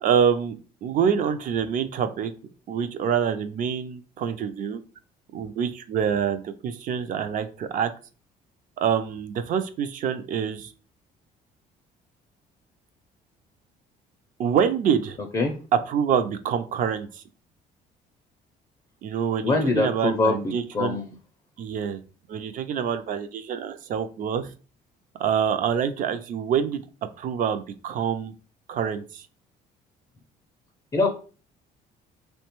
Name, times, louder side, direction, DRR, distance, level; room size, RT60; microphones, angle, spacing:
voice 1, 0.0-0.6 0.8-2.3 2.7-4.8 5.3-7.9 8.8-10.7 14.4-15.2 15.7-17.2 19.0-21.0 21.6-22.0 22.3-24.5 25.2-26.8 27.2-28.3 28.7-29.3, right 7 dB, 50° right, 9 dB, 0.4 m, -26 dB
voice 2, 19.4-21.0 30.9-31.1, left 3 dB, 25° left, 2 dB, 0.4 m, -23 dB
2.9 x 2.2 x 2.9 m, 0.37 s
cardioid pair, 110°, 17 cm